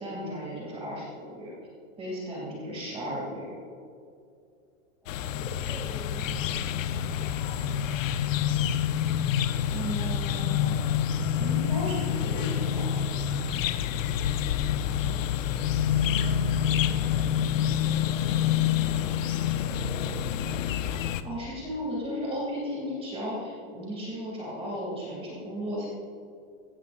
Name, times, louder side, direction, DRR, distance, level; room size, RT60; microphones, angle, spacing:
voice 1, 0.0-1.5 2.0-3.5 9.7-10.8 11.3-13.0 21.2-25.9, equal, 15° right, -4 dB, 2.6 m, -35 dB
voice 2, 5.0-8.4 14.5-20.3, left 1 dB, ahead, -5 dB, 2.7 m, -48 dB
sound 1, 5.1-21.2, left 9 dB, 70° left, 0.8 m, -27 dB
16.0 x 15.5 x 2.6 m, 2.5 s
supercardioid pair, 155°, 40 cm